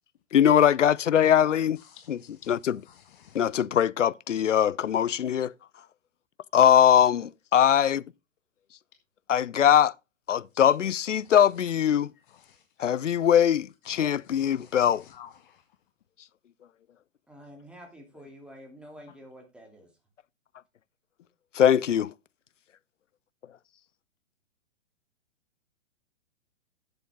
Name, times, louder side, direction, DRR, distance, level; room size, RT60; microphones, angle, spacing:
voice 1, 0.3-1.8 2.1-2.2 2.5-2.8 3.3-5.5 6.5-8.0 9.3-9.9 10.3-12.1 12.8-15.0 21.5-22.1, left 9 dB, 75° left, 0.6 m, -21 dB
voice 2, 1.7-3.5 3.8-3.9 4.9-5.0 10.5-10.6 11.1-11.7 12.1-12.9 13.8-15.8, left 9 dB, 45° left, 1.0 m, -54 dB
voice 3, 17.3-19.9, equal, 5° right, 2.6 m, -48 dB
11.5 x 8.2 x 3.5 m
figure-of-eight pair, 115°, 37 cm